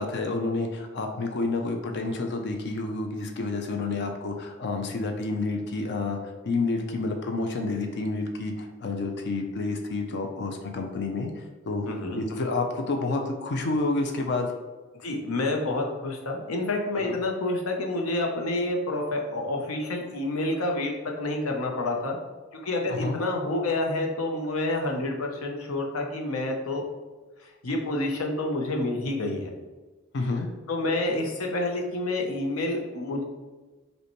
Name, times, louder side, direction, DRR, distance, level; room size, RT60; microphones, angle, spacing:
voice 1, 0.0-6.2 6.4-11.9 12.1-14.5 16.9-17.1 22.9-23.2 30.1-30.5, left 3 dB, 55° left, 4 dB, 0.5 m, -29 dB
voice 2, 11.9-12.2 14.9-20.9 21.2-22.2 22.5-26.8 27.4-29.5 30.7-33.2, left 2 dB, 85° left, 1 dB, 0.7 m, -28 dB
5.2 x 2.2 x 3.0 m, 1.3 s
head